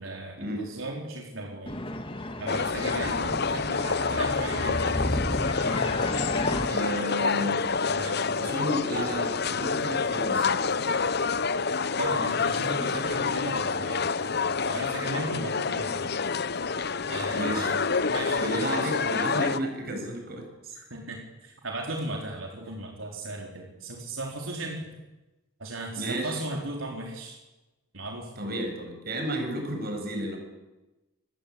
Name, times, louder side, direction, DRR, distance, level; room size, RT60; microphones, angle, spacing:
voice 1, 0.0-1.8 2.4-5.3 7.9-8.4 12.0-14.1 14.7-16.1 17.1-17.8 18.1-18.9 20.8-24.9 25.6-27.4 27.9-28.3, right 2 dB, 85° right, 1 dB, 4.1 m, -36 dB
sound 1, 1.7-6.7, left 1 dB, 25° left, 2.2 m, -33 dB
sound 2, 2.5-19.6, left 5 dB, 55° left, 0.9 m, -27 dB
voice 2, 6.6-7.6 8.3-10.6 17.3-17.8 18.4-20.7 26.0-26.4 28.4-30.4, equal, 50° right, 3 dB, 7.7 m, -32 dB
27.0 x 21.0 x 8.7 m, 1.1 s
head